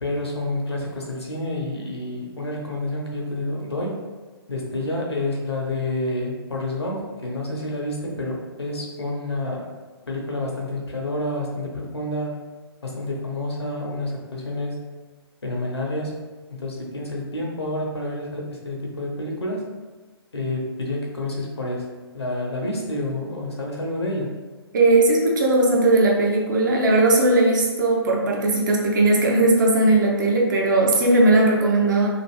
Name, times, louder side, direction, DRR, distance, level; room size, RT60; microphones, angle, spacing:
voice 1, 0.0-4.0 4.5-9.7 10.1-12.4 12.8-14.8 15.4-16.2 16.5-19.6 20.3-24.3, left 1 dB, 75° left, -1 dB, 0.8 m, -29 dB
voice 2, 24.7-32.1, right 2 dB, 50° right, -2 dB, 0.7 m, -18 dB
3.0 x 2.5 x 3.0 m, 1.3 s
figure-of-eight pair, 130°, 14 cm